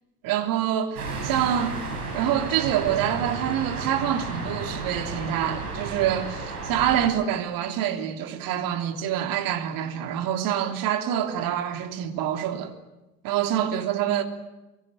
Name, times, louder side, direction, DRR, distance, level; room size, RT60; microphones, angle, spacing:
voice 1, 0.2-1.8 2.1-12.7 13.2-14.2, right 10 dB, 45° right, 3.2 m, -26 dB
sound 1, 1.0-7.1, right 3 dB, 70° right, 7.6 m, -33 dB
23.5 x 23.5 x 9.0 m
figure-of-eight pair, 75°, 46 cm